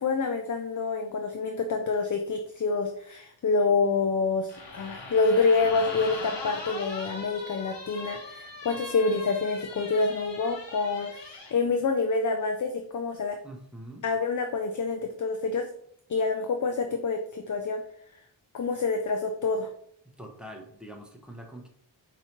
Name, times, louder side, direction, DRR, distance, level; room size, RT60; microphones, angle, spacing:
voice 1, 0.0-13.4 14.0-15.7 16.1-17.8 18.5-19.7, left 4 dB, 45° left, 5 dB, 0.4 m, -27 dB
sound 1, 4.5-11.6, left 3 dB, 65° left, 1.0 m, -40 dB
voice 2, 13.4-14.0 20.2-21.7, right 1 dB, ahead, 1 dB, 0.7 m, -44 dB
4.7 x 2.8 x 2.9 m, 0.67 s
wide cardioid pair, 55°, 46 cm